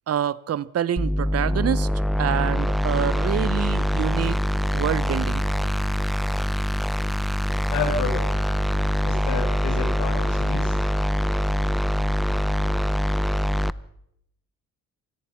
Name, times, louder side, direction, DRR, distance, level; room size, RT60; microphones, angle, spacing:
voice 1, 0.1-1.9 2.2-4.4 4.7-5.4, right 10 dB, 55° right, 1.0 m, -26 dB
sound 1, 1.0-13.7, equal, ahead, 0.8 m, -24 dB
voice 2, 7.7-8.5 9.0-10.8, left 5 dB, 85° left, 7.7 m, -30 dB
26.5 x 18.5 x 5.9 m
cardioid pair, 90°, 30 cm